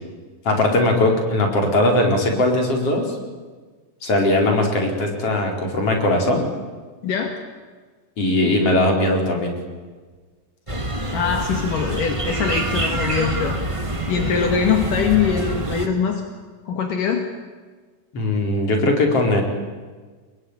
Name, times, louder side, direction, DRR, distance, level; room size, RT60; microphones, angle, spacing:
voice 1, 0.5-3.2 4.0-6.5 8.2-9.6 18.1-19.4, left 1 dB, 45° left, 2 dB, 5.4 m, -19 dB
voice 2, 7.0-7.3 11.1-13.6 14.1-16.2 16.7-17.2, left 7 dB, 75° left, 4 dB, 3.6 m, -22 dB
sound 1, 10.7-15.9, right 2 dB, 25° right, 0.7 m, -26 dB
26.5 x 22.0 x 9.9 m, 1.4 s
omnidirectional pair, 3.8 m